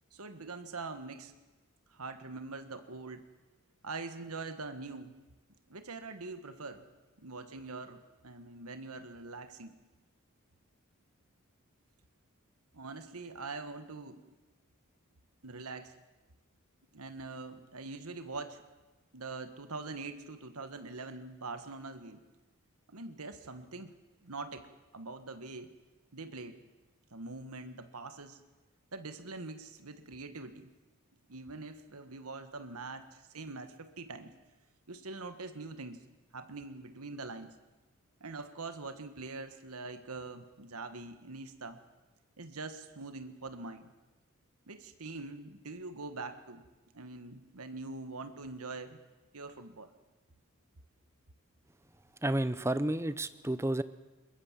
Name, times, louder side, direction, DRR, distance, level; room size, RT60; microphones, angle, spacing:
voice 1, 0.1-1.3 1.9-3.3 3.8-5.2 5.7-6.8 7.2-9.7 12.7-14.2 15.4-15.9 16.9-18.6 19.1-22.2 22.9-23.9 24.2-24.7 24.9-25.7 26.1-26.6 27.1-28.4 28.9-30.7 31.3-34.3 34.9-36.0 36.3-37.5 38.2-41.8 42.4-43.9 44.7-46.6 46.9-49.0 49.3-49.9, right 3 dB, 85° right, 9 dB, 1.6 m, -43 dB
voice 2, 52.2-53.8, right 1 dB, 10° right, 14 dB, 0.7 m, -31 dB
22.0 x 21.5 x 7.5 m, 1.2 s
head